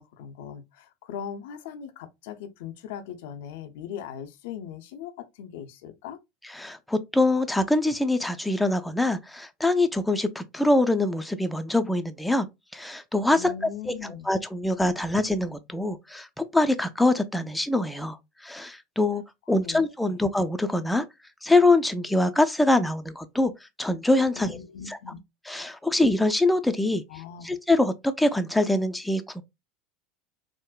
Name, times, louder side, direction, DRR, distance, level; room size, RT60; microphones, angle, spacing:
voice 1, 0.0-6.2 13.3-14.3 19.6-20.2 24.3-25.2 27.1-27.6, left 8 dB, 70° left, 0.4 m, -39 dB
voice 2, 6.6-12.5 12.7-13.5 13.9-14.0 14.3-18.2 18.4-19.2 19.5-21.0 21.4-23.5 23.8-24.6 24.9-25.0 25.5-27.0 27.4-29.4, left 2 dB, 5° left, 0.4 m, -24 dB
3.6 x 2.1 x 2.3 m
hypercardioid pair, 85°, 0 cm